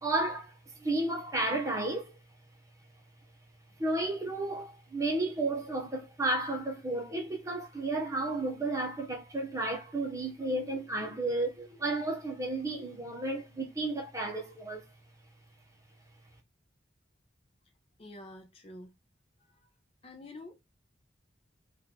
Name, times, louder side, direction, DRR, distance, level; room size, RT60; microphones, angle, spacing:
voice 1, 0.0-2.2 3.8-14.8, right 2 dB, 15° right, 0.8 m, -32 dB
voice 2, 18.0-18.9 20.0-20.6, left 2 dB, 30° left, 0.5 m, -47 dB
3.0 x 2.4 x 3.7 m
head